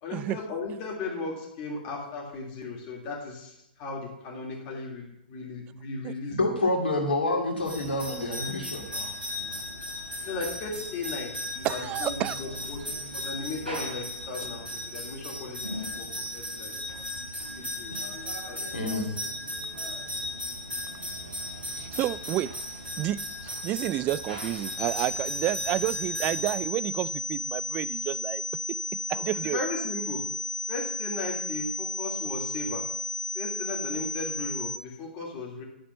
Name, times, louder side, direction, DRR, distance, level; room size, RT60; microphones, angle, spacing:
voice 1, 0.0-6.4 10.2-12.9 13.1-16.7 17.5-17.9 18.5-19.0 29.1-30.2 30.7-32.8 33.3-35.6, left 3 dB, 35° left, 3.0 m, -36 dB
voice 2, 6.4-9.1 18.7-19.1, left 2 dB, 75° left, 2.4 m, -28 dB
sound 1, 7.6-26.5, left 1 dB, 90° right, 3.4 m, -36 dB
voice 3, 11.6-12.4 21.8-22.6 23.0-28.4 29.1-29.6, right 15 dB, 30° right, 0.3 m, -30 dB
sound 2, 24.8-34.8, left 1 dB, 10° left, 2.0 m, -33 dB
10.5 x 5.0 x 7.0 m
figure-of-eight pair, 110°, 5 cm